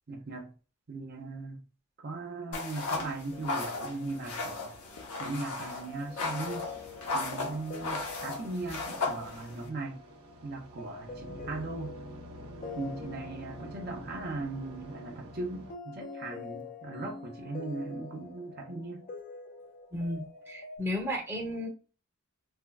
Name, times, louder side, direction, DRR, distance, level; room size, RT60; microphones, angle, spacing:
voice 1, 0.1-0.5 0.9-1.6 2.0-4.8 5.2-6.7 7.1-10.0 10.4-12.0 12.7-19.1, right 3 dB, 45° right, 0.7 m, -38 dB
sound 1, 2.5-9.7, left 3 dB, 90° left, 0.9 m, -36 dB
sound 2, 3.3-20.8, left 4 dB, 40° left, 0.5 m, -47 dB
sound 3, 6.3-15.7, equal, 90° right, 0.9 m, -48 dB
voice 2, 19.9-21.7, left 1 dB, 10° right, 0.8 m, -34 dB
4.4 x 2.2 x 2.3 m
head